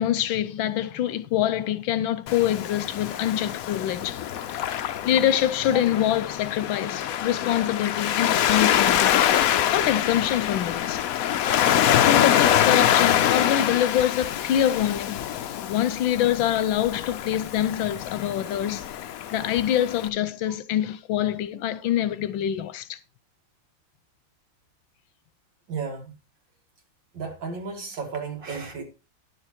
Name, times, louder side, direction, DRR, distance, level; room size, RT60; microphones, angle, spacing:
voice 1, 0.0-4.2 5.0-9.2 9.7-11.0 12.0-15.2 15.6-19.0 19.3-23.0, left 11 dB, 85° left, 1.5 m, -25 dB
Waves surf, 2.3-20.1, left 10 dB, 70° left, 0.8 m, -25 dB
voice 2, 25.7-26.2 27.1-28.8, right 5 dB, 65° right, 2.9 m, -33 dB
10.5 x 6.7 x 4.5 m
omnidirectional pair, 2.1 m